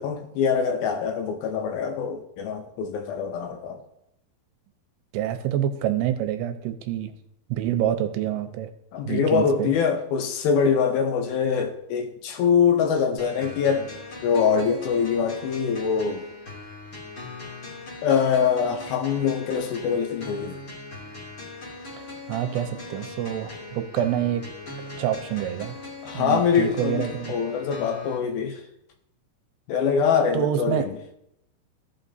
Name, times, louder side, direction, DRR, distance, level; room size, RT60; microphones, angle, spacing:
voice 1, 0.0-3.8 8.9-13.9 14.2-16.2 18.0-20.6 26.0-27.0 27.3-28.6 29.7-30.9, left 6 dB, 80° left, 5 dB, 2.3 m, -24 dB
voice 2, 5.1-7.1 7.5-8.7 9.1-9.7 22.0-24.5 25.0-25.8 26.1-27.3 30.3-30.9, right 11 dB, 85° right, 8 dB, 2.8 m, -27 dB
sound 1, 13.2-28.2, left 2 dB, 35° left, 2.2 m, -40 dB
16.0 x 5.8 x 2.7 m, 0.80 s
omnidirectional pair, 4.7 m